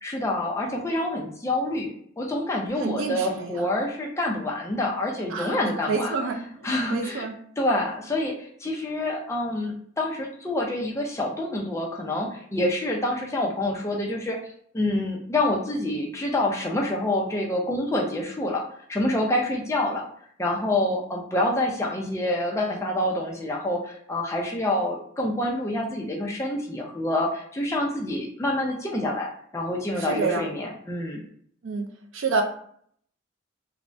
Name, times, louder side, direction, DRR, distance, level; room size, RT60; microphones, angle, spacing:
voice 1, 0.0-6.1 6.6-7.2 7.6-14.4 14.7-20.0 20.4-31.2, left 1 dB, 15° left, -1 dB, 0.4 m, -27 dB
voice 2, 2.8-3.6 5.3-5.5 5.9-7.4 30.0-30.5 31.6-31.9 32.1-32.4, right 4 dB, 85° right, 5 dB, 0.4 m, -28 dB
3.2 x 2.1 x 2.5 m, 0.62 s
head